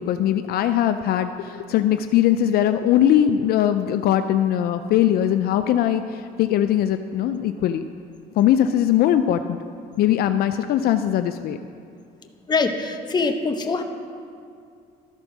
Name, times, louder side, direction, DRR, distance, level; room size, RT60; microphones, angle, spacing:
voice 1, 0.0-7.9 8.4-9.6 10.0-11.6, left 11 dB, 65° left, 9 dB, 0.4 m, -20 dB
voice 2, 12.5-13.8, left 4 dB, 25° left, 6 dB, 0.7 m, -23 dB
13.0 x 4.4 x 6.0 m, 2.3 s
cardioid pair, 110°, 17 cm